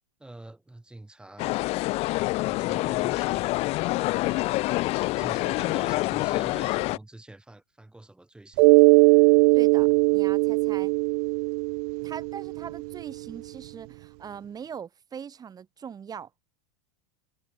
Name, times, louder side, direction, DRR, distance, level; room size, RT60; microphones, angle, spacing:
voice 1, 0.2-1.5 2.4-3.7 4.5-8.8, right 2 dB, 5° right, 7.0 m, -46 dB
sound 1, 1.4-7.0, left 20 dB, 40° left, 0.5 m, -26 dB
Mallet percussion, 8.6-13.0, right 33 dB, 60° right, 1.0 m, -20 dB
voice 2, 9.5-10.9 12.0-16.3, right 7 dB, 25° right, 5.6 m, -41 dB
hypercardioid pair, 115°, 15 cm